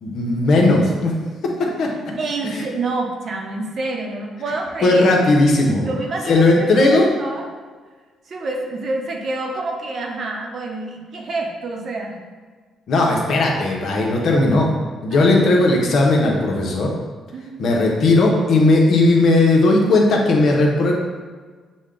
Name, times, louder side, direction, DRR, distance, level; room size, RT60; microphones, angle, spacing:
voice 1, 0.0-1.2 1.4-1.9 2.4-2.7 4.8-5.9 6.3-7.1 12.9-14.7 15.0-16.9 17.6-20.9, left 2 dB, 65° left, -1 dB, 0.9 m, -16 dB
voice 2, 2.2-5.1 5.8-7.4 8.3-12.2 15.1-15.2 17.3-17.7, right 2 dB, 55° right, 1 dB, 0.8 m, -28 dB
6.3 x 2.3 x 3.7 m, 1.5 s
cardioid pair, 90°, 0 cm